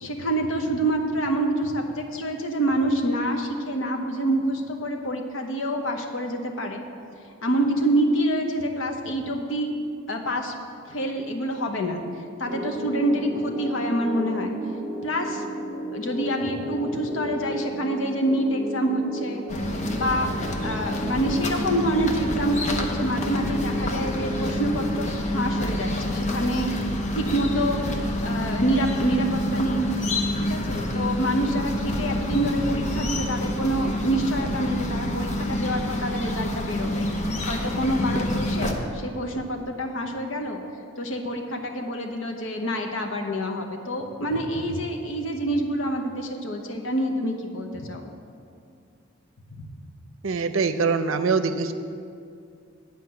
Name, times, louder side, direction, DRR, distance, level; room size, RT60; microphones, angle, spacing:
voice 1, 0.0-6.8 7.4-9.7 10.1-10.5 10.9-12.0 12.4-14.5 15.0-15.4 15.9-19.4 19.9-20.3 20.6-26.7 27.1-27.8 28.2-29.9 30.4-37.1 37.5-40.6 41.0-48.1 49.6-49.7, right 1 dB, 75° left, 3 dB, 1.0 m, -26 dB
sound 1, 12.4-26.8, right 1 dB, 10° right, 2.8 m, -35 dB
sound 2, 19.5-38.7, left 1 dB, 35° left, 0.8 m, -28 dB
voice 2, 50.2-51.7, right 4 dB, 80° right, 10 dB, 0.6 m, -23 dB
9.5 x 5.1 x 8.0 m, 2.4 s
head